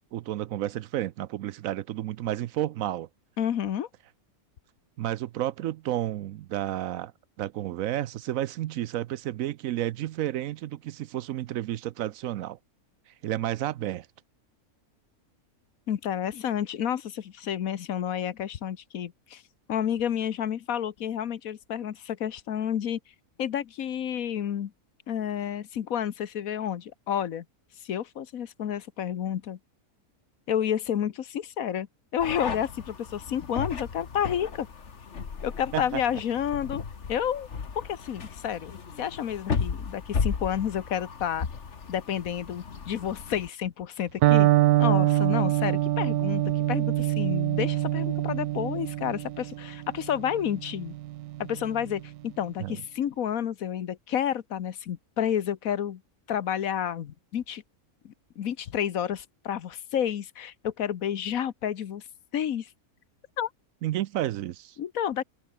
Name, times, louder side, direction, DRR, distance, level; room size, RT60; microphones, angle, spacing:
voice 1, 0.1-3.1 5.0-7.1 7.4-12.6 13.2-14.1 35.7-36.0 52.6-52.8 63.8-64.8, right 13 dB, 70° right, 0.9 m, -31 dB
voice 2, 3.4-3.9 15.9-19.4 19.7-23.0 23.4-24.7 25.1-27.4 27.8-29.6 30.5-31.9 32.1-34.7 35.4-36.8 37.1-37.5 37.7-41.5 41.9-44.5 44.8-50.9 51.4-56.0 56.3-57.6 58.0-62.0 62.3-62.7 63.4-63.5 64.8-65.2, left 9 dB, 70° left, 1.4 m, -30 dB
sound 1, 32.2-43.5, left 5 dB, 50° left, 1.9 m, -35 dB
Electric guitar, 44.2-52.1, right 15 dB, 90° right, 1.1 m, -25 dB
omnidirectional pair, 1.6 m